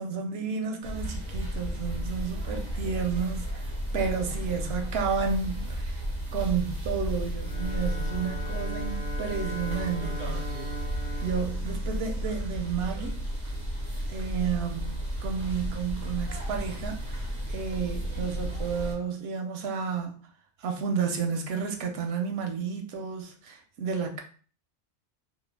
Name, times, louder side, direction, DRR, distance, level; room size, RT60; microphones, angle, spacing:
voice 1, 0.0-6.0 6.3-10.8 11.2-13.3 14.1-20.2 20.6-24.2, right 6 dB, 65° right, 0.8 m, -32 dB
sound 1, 0.8-19.0, equal, 35° right, 0.6 m, -33 dB
Bowed string instrument, 7.3-12.6, right 1 dB, 65° left, 0.3 m, -40 dB
2.5 x 2.0 x 3.1 m
omnidirectional pair, 1.2 m